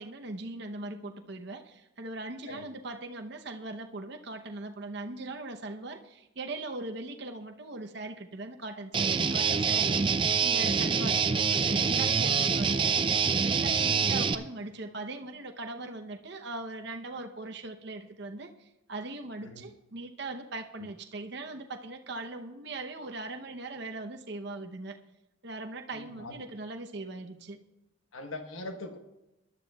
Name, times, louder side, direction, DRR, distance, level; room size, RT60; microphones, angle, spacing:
voice 1, 0.0-12.9 13.4-25.0 25.4-27.6, right 2 dB, 55° right, 4 dB, 0.8 m, -40 dB
Guitar, 8.9-14.3, right 6 dB, 25° right, 0.4 m, -26 dB
voice 2, 9.4-10.0 11.1-11.4 13.8-14.1 19.4-19.7 20.8-20.9 25.9-26.4 28.1-29.0, left 2 dB, 80° left, 5 dB, 1.2 m, -43 dB
21.0 x 11.5 x 2.3 m, 0.97 s
head